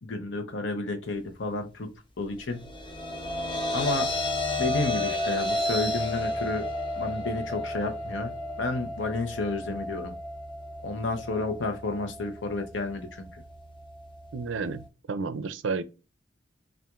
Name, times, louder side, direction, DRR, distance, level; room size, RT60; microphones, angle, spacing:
voice 1, 0.0-1.9 2.2-2.7 3.7-4.1 4.6-6.6 7.0-8.3 8.6-10.1 10.8-13.4, left 3 dB, 80° left, 0.8 m, -31 dB
sound 1, 2.5-14.9, left 1 dB, 25° left, 0.7 m, -33 dB
voice 2, 14.3-15.8, right 4 dB, 80° right, 0.4 m, -31 dB
5.7 x 2.5 x 2.4 m
head